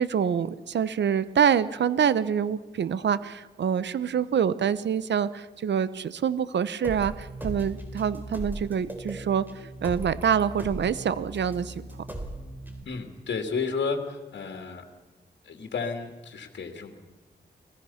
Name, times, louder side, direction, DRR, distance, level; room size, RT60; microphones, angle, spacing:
voice 1, 0.0-11.9, right 7 dB, 75° right, 15 dB, 0.9 m, -26 dB
sound 1, 6.8-12.8, right 1 dB, 10° right, 3.4 m, -38 dB
voice 2, 12.8-14.8 15.4-16.9, left 5 dB, 70° left, 4 dB, 2.7 m, -32 dB
29.5 x 19.5 x 5.8 m, 1.2 s
wide cardioid pair, 90°, 19 cm